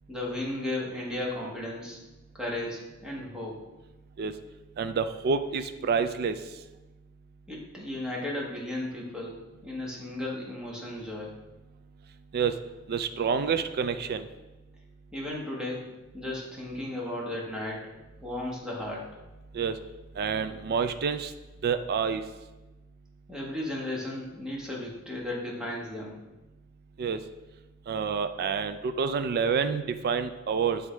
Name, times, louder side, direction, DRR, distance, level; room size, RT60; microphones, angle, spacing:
voice 1, 0.1-2.0 2.3-3.6 7.5-11.3 15.1-15.9 16.1-17.9 18.2-19.1 23.3-26.2, left 1 dB, 5° right, -4 dB, 1.3 m, -35 dB
voice 2, 4.8-6.4 12.3-12.5 12.9-14.3 19.5-19.8 20.2-21.3 21.6-22.2 27.0-27.2 27.9-30.8, right 6 dB, 50° right, 9 dB, 0.3 m, -28 dB
8.6 x 3.5 x 3.3 m, 1.1 s
head